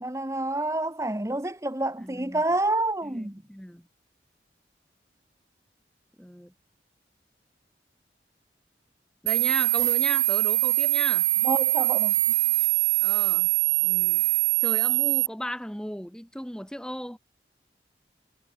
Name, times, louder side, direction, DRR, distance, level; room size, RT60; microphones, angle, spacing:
voice 1, 0.0-3.4 11.4-12.1, right 2 dB, 15° right, 1.0 m, -28 dB
voice 2, 2.0-2.4 3.0-3.9 6.2-6.5 9.2-11.3 13.0-13.5 13.8-14.2 14.6-17.2, equal, 5° left, 1.4 m, -36 dB
sound 1, 9.3-15.3, right 23 dB, 65° right, 0.3 m, -23 dB
head